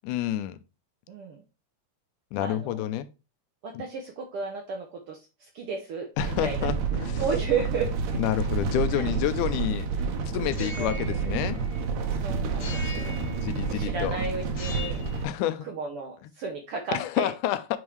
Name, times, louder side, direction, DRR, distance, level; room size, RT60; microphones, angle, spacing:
voice 1, 0.0-0.6 2.3-3.1 3.7-3.8 6.2-7.2 8.2-9.9 10.3-11.6 12.9-14.2 15.2-15.7 16.2-16.3 16.9-17.8, left 12 dB, 85° left, 2.1 m, -29 dB
voice 2, 1.1-1.4 2.4-2.8 3.6-6.7 7.2-7.9 8.9-9.1 10.6-11.0 12.1-13.2 13.7-15.2 15.6-17.3, right 5 dB, 70° right, 1.4 m, -33 dB
sound 1, 6.2-15.2, right 5 dB, 85° right, 2.5 m, -29 dB
sound 2, 10.5-12.1 12.6-13.9 14.5-15.2, left 3 dB, 65° left, 1.0 m, -41 dB
8.7 x 3.6 x 3.1 m
omnidirectional pair, 3.5 m